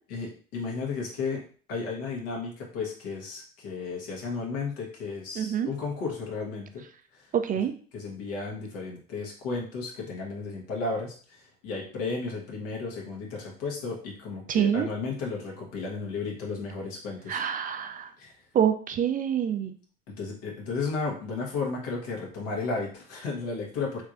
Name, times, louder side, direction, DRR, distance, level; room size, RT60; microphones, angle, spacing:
voice 1, 0.1-1.4 1.7-6.9 7.1-7.3 7.9-17.4 18.2-18.3 20.2-24.0, left 4 dB, 75° left, -2 dB, 1.4 m, -33 dB
voice 2, 5.4-5.7 7.3-7.7 14.5-14.9 17.3-18.1 18.5-19.7, right 9 dB, 30° right, 7 dB, 0.4 m, -26 dB
3.5 x 3.1 x 2.5 m, 0.43 s
hypercardioid pair, 80°, 29 cm